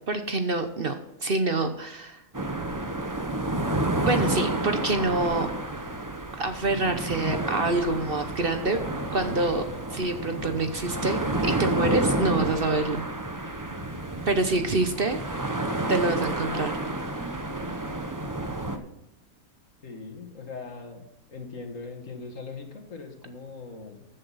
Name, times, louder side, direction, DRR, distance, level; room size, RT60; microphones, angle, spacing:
voice 1, 0.1-2.2 4.1-5.5 6.3-8.8 9.1-9.6 9.9-13.0 14.3-15.2 15.9-16.7, right 2 dB, 45° right, 7 dB, 1.1 m, -26 dB
sound 1, 2.3-18.8, right 2 dB, 15° right, 0.9 m, -30 dB
voice 2, 19.8-24.1, left 4 dB, 65° left, 4 dB, 2.2 m, -40 dB
15.0 x 7.7 x 4.2 m, 0.88 s
omnidirectional pair, 1.5 m